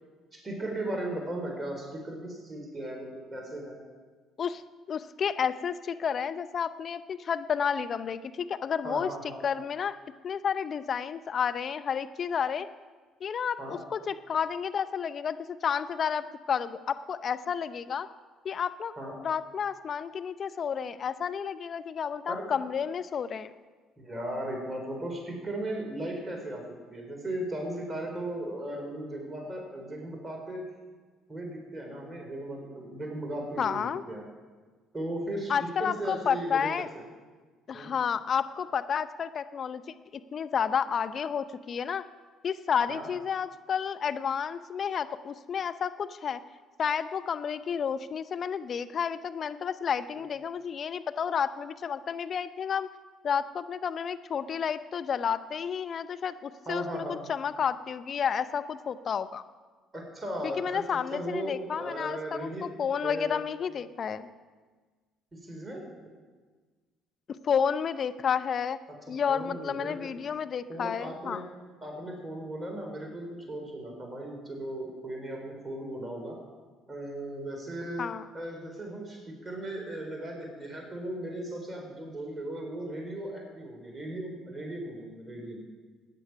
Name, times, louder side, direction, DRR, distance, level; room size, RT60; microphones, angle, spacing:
voice 1, 0.3-3.8 8.8-9.4 13.6-13.8 19.0-19.2 22.3-22.5 24.0-26.6 26.9-30.6 31.3-33.8 34.1-34.2 34.9-36.9 37.7-37.9 42.9-43.1 56.7-57.2 59.9-60.8 61.1-62.7 63.0-63.4 65.3-65.8 69.3-70.0 70.7-71.4 71.8-76.4 76.9-78.1 78.3-85.6, right 1 dB, 20° right, 1 dB, 4.0 m, -37 dB
voice 2, 4.9-9.1 9.4-9.9 10.2-12.7 13.2-18.1 18.4-18.9 19.2-23.5 33.6-34.0 35.5-36.9 37.7-39.8 40.1-42.0 42.4-46.4 46.8-52.9 53.2-59.4 60.4-64.3 67.3-68.8 69.1-71.4 78.0-78.3, left 7 dB, 50° left, 11 dB, 0.7 m, -31 dB
16.0 x 9.9 x 5.9 m, 1.4 s
hypercardioid pair, 55°, 0 cm